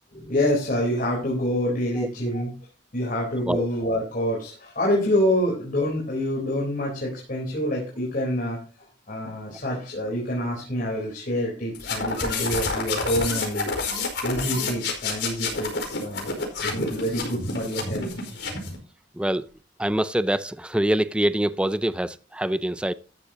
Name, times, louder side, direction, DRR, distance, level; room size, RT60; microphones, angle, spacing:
voice 1, 0.1-2.5 2.9-8.6 9.1-13.7 14.2-16.3 16.6-18.2, equal, 50° left, 4.0 m, -26 dB
sound 1, 11.7-18.8, left 3 dB, 75° left, 5.0 m, -29 dB
voice 2, 19.1-19.5 19.8-22.9, right 1 dB, 5° right, 0.4 m, -25 dB
14.0 x 11.5 x 2.9 m
head